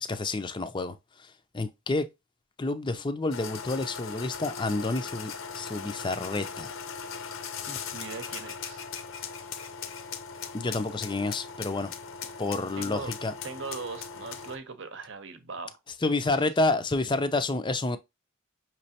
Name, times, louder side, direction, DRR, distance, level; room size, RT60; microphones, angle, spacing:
voice 1, 0.0-1.0 1.5-2.1 2.6-6.7 10.5-11.9 12.4-13.3 16.0-18.0, left 2 dB, 20° left, 0.5 m, -29 dB
sound 1, 3.3-14.6, left 6 dB, 65° left, 0.7 m, -39 dB
voice 2, 7.7-8.8 12.7-13.2 13.4-15.8 16.3-16.4, right 4 dB, 60° right, 0.8 m, -40 dB
5.9 x 3.2 x 2.8 m
head